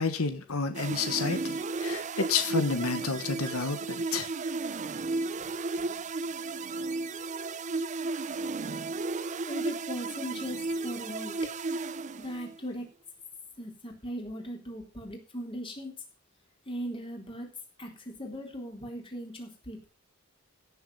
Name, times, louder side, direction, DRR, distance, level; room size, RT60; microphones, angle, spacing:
voice 1, 0.0-4.3, left 4 dB, 85° left, 1.3 m, -30 dB
sound 1, 0.7-12.6, right 3 dB, 35° right, 0.5 m, -34 dB
voice 2, 5.4-5.9 9.4-11.3 12.2-12.9 13.6-15.9 16.7-17.5 17.8-19.9, equal, 25° left, 3.8 m, -39 dB
16.5 x 7.2 x 5.5 m
head